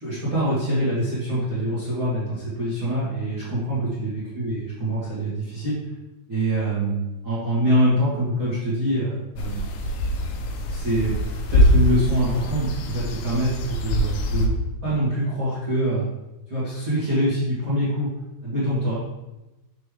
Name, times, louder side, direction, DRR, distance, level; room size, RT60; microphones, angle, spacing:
voice 1, 0.0-5.8 6.3-9.7 10.7-11.2 11.5-14.6 14.8-16.0 16.5-18.1 18.4-18.9, right 1 dB, 45° right, -12 dB, 1.7 m, -24 dB
sound 1, 9.3-14.5, left 1 dB, 85° left, 2.1 m, -23 dB
6.7 x 5.4 x 3.4 m, 1.0 s
omnidirectional pair, 5.2 m